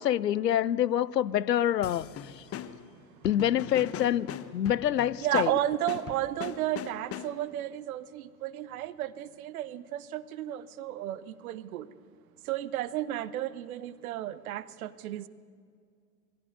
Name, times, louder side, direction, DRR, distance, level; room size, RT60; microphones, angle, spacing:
voice 1, 0.0-2.1 3.2-5.5, left 11 dB, 80° left, 0.6 m, -26 dB
sound 1, 1.8-7.6, left 10 dB, 30° left, 1.0 m, -41 dB
voice 2, 5.2-11.9 12.5-15.3, right 13 dB, 60° right, 1.0 m, -33 dB
22.0 x 14.0 x 9.4 m
figure-of-eight pair, 80°, 48 cm